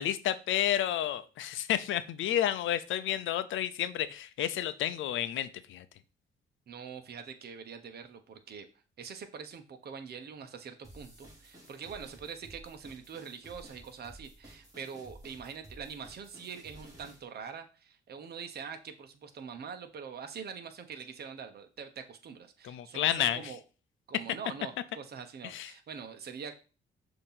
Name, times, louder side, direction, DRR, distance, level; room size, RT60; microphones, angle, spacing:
voice 1, 0.0-5.8 22.6-23.5 25.4-25.7, left 11 dB, 75° left, 13 dB, 0.6 m, -31 dB
voice 2, 6.7-8.7 9.0-23.6 24.1-26.6, right 6 dB, 55° right, 7 dB, 1.1 m, -44 dB
sound 1, 10.8-17.2, right 1 dB, 20° right, 3.0 m, -53 dB
6.6 x 3.0 x 5.7 m, 0.35 s
cardioid pair, 90°, 20 cm